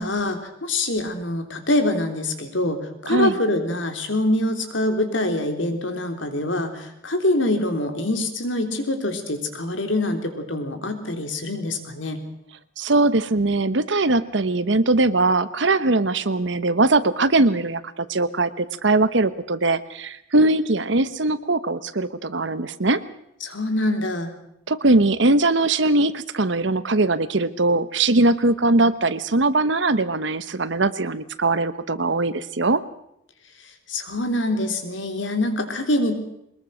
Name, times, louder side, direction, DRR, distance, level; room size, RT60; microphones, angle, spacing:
voice 1, 0.0-12.3 23.4-24.3 33.6-36.2, left 1 dB, 75° left, 6 dB, 3.5 m, -25 dB
voice 2, 12.8-23.0 24.7-32.8, right 2 dB, 70° right, 13 dB, 1.1 m, -21 dB
22.5 x 21.0 x 6.4 m, 0.78 s
head